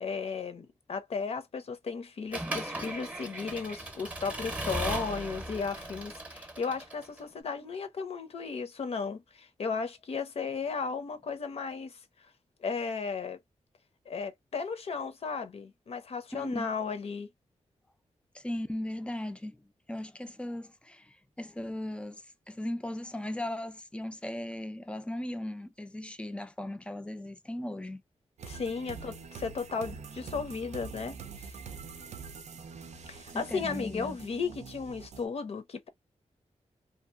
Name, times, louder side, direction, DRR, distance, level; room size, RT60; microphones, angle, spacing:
voice 1, 0.0-12.3 12.6-13.4 14.1-17.3 28.5-31.5 33.1-35.9, left 5 dB, 60° left, 0.6 m, -35 dB
Accelerating revving vroom / Mechanisms, 2.3-7.2, right 1 dB, 10° right, 0.7 m, -37 dB
voice 2, 16.3-16.7 18.3-19.6 19.9-22.2 22.5-28.0 33.3-34.2, left 1 dB, 10° left, 0.4 m, -37 dB
sound 1, 28.4-35.3, right 5 dB, 70° right, 0.5 m, -45 dB
2.7 x 2.4 x 2.3 m
wide cardioid pair, 155°, 12 cm